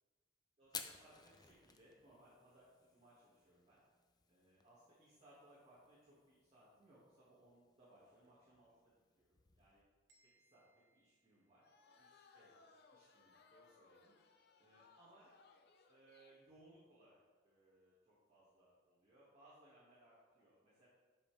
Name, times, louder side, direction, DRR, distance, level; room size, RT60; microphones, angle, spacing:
Fire, 0.6-9.8, left 6 dB, 20° left, 0.5 m, -57 dB
voice 1, 0.6-3.8 4.3-9.8 10.3-10.6 10.9-11.7 12.0-14.1 14.6-15.3 15.9-17.2 17.4-20.9, right 1 dB, 35° right, -10 dB, 2.2 m, -67 dB
sound 1, 10.1-12.1, right 2 dB, 85° right, 2.1 m, -77 dB
sound 2, 11.6-16.5, left 4 dB, 55° left, 0.7 m, -67 dB
12.0 x 5.4 x 3.5 m, 1.4 s
head